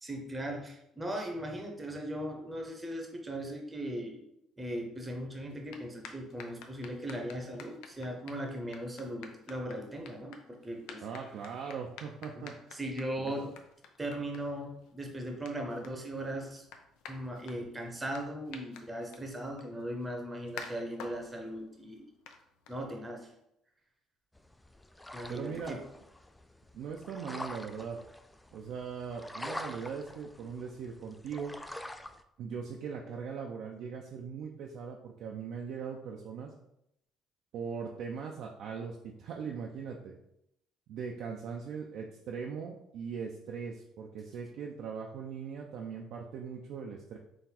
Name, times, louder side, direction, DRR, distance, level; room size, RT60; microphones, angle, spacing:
voice 1, 0.0-4.3 4.6-11.1 12.3-13.5 14.0-16.6 17.1-22.1 22.7-23.3 25.1-25.8, right 1 dB, 15° right, 2 dB, 0.7 m, -38 dB
sound 1, 5.5-23.2, left 6 dB, 90° left, 0.5 m, -52 dB
voice 2, 11.0-12.7 13.2-13.5 25.3-25.8 26.7-28.0 28.5-31.5 32.4-36.5 37.5-40.1 40.9-47.2, right 6 dB, 70° right, 0 dB, 0.5 m, -40 dB
sound 2, 24.3-32.2, left 1 dB, 10° left, 0.3 m, -45 dB
3.9 x 2.5 x 4.3 m, 0.79 s
cardioid pair, 115°, 0 cm